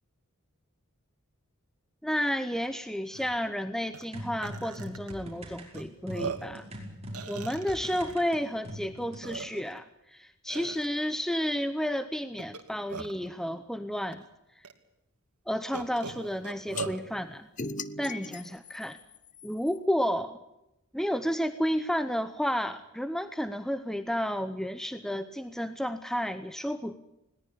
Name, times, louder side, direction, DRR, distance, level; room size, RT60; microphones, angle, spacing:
voice 1, 2.0-6.7 7.3-14.2 15.5-17.5 18.0-19.0 19.4-20.4 20.9-27.0, equal, ahead, 10 dB, 0.8 m, -31 dB
Burping eructation, 2.6-2.7 3.1-3.3 3.9-4.0 4.4-5.1 5.7-5.8 6.1-6.6 7.1-8.1 8.8-8.9 9.2-9.8 10.5-10.9 12.4-13.3 14.1-14.2 14.6-14.7 15.7-17.0, right 5 dB, 90° right, 2.5 m, -39 dB
sound 1, 4.1-9.3, equal, 30° right, 5.3 m, -42 dB
sound 2, 16.8-16.9 17.6-19.8, left 4 dB, 35° left, 0.8 m, -39 dB
21.0 x 18.5 x 8.5 m, 0.89 s
head